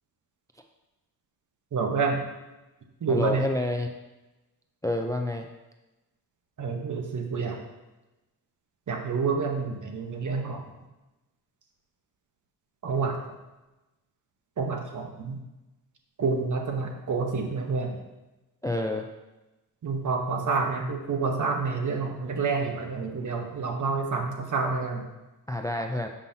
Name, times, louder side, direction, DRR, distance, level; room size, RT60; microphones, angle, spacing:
voice 1, 1.7-2.2 3.0-3.4 6.6-7.6 8.9-10.6 12.8-13.2 14.6-15.4 16.2-18.0 19.8-25.1, right 4 dB, 55° right, 2 dB, 1.0 m, -28 dB
voice 2, 3.1-3.9 4.8-5.5 18.6-19.1 25.5-26.1, left 1 dB, 10° left, 4 dB, 0.3 m, -28 dB
7.0 x 5.5 x 2.7 m, 1.0 s
wide cardioid pair, 105°, 36 cm